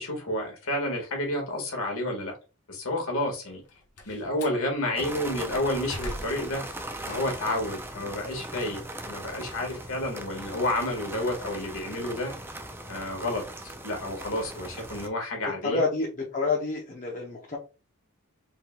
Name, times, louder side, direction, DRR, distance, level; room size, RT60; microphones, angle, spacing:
voice 1, 0.0-2.3 2.7-3.6 4.1-6.6 7.0-8.8 9.1-12.4 12.9-15.8, left 1 dB, 65° left, 1 dB, 1.9 m, -30 dB
Slam, 3.5-4.6 5.2-7.6 8.0-10.4, left 1 dB, 90° left, 1.2 m, -43 dB
sound 1, 4.9-15.1, right 1 dB, 10° right, 0.4 m, -39 dB
voice 2, 15.6-17.6, left 3 dB, 35° left, -2 dB, 0.9 m, -28 dB
4.5 x 3.9 x 2.4 m, 0.32 s
head